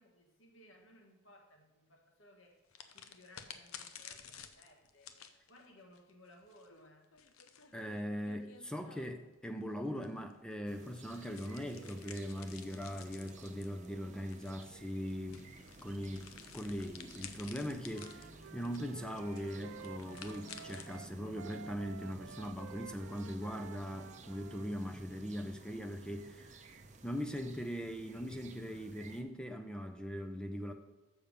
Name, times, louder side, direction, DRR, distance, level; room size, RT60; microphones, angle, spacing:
voice 1, 0.0-5.2 5.5-7.1, left 1 dB, 70° left, 1.6 m, -61 dB
sound 1, 2.7-9.3 10.0-21.0, left 8 dB, 90° left, 0.7 m, -54 dB
voice 2, 7.7-15.5 15.8-26.7 27.0-30.7, equal, 5° left, 0.4 m, -40 dB
sound 2, 10.7-29.2, right 3 dB, 35° right, 0.6 m, -55 dB
Wind instrument woodwind instrument, 17.9-24.7, right 7 dB, 70° right, 0.3 m, -52 dB
7.0 x 6.9 x 5.3 m
head